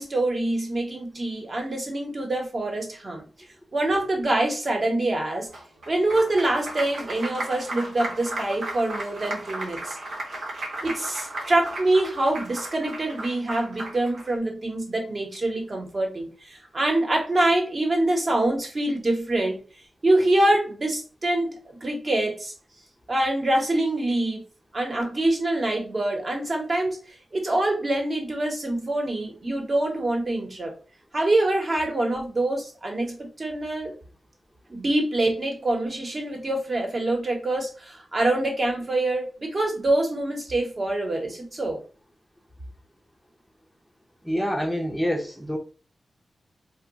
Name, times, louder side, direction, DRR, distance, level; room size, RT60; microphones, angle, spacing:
voice 1, 0.0-3.2 3.7-5.5 5.9-10.0 10.8-19.6 20.0-22.5 23.1-24.4 24.7-27.0 27.3-30.7 31.1-33.9 34.7-41.8, right 1 dB, 40° right, 1.0 m, -25 dB
Applause, 5.5-14.3, right 1 dB, 85° right, 1.1 m, -35 dB
voice 2, 44.2-45.6, equal, 5° right, 0.6 m, -26 dB
2.3 x 2.2 x 3.8 m
wide cardioid pair, 95°, 0 cm